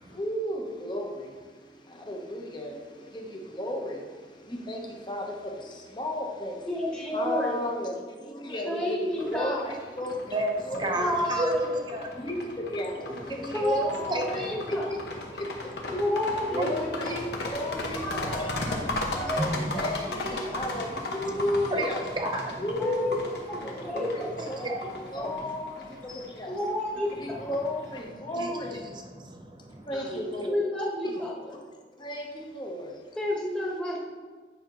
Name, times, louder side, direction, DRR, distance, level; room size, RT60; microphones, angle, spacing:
voice 1, 0.0-6.7 7.1-11.1 12.2-14.8 15.3-15.9 16.5-18.7 19.1-22.0 22.6-23.4 23.6-24.6 25.1-26.6 27.2-28.8 29.9-30.6 31.0-31.2 32.0-33.2, left 1 dB, 25° left, 0 dB, 0.9 m, -34 dB
voice 2, 6.7-7.6 8.6-9.8 10.9-12.0 12.4-12.5 13.5-14.9 15.9-17.2 17.9-18.8 19.1-19.9 22.8-23.2 23.4-25.3 26.1-27.5 29.9-31.6 33.2-34.0, left 1 dB, 5° left, -4 dB, 1.2 m, -31 dB
sound 1, 9.2-28.0, left 2 dB, 75° left, 1.0 m, -37 dB
voice 3, 10.3-12.1 13.4-13.6 14.1-14.5 16.6-16.7 19.7-19.8 20.1-21.4 21.7-21.9 22.2-22.7 23.9-24.7 25.4-25.5 25.8-26.1 28.2-28.5 28.9-29.9, right 1 dB, 25° right, 2 dB, 0.7 m, -33 dB
9.4 x 5.8 x 3.0 m, 1.5 s
head